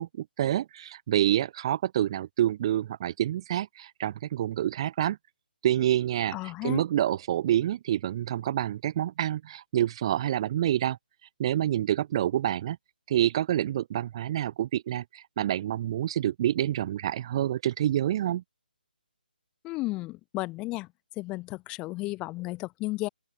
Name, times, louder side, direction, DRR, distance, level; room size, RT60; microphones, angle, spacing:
voice 1, 0.0-5.2 5.6-6.4 6.6-11.0 11.4-12.8 13.1-18.4, right 12 dB, 30° right, 0.4 m, -27 dB
voice 2, 6.3-6.8 19.6-20.9 21.2-23.1, left 20 dB, 15° left, 0.6 m, -33 dB
open air
figure-of-eight pair, 150°, 5 cm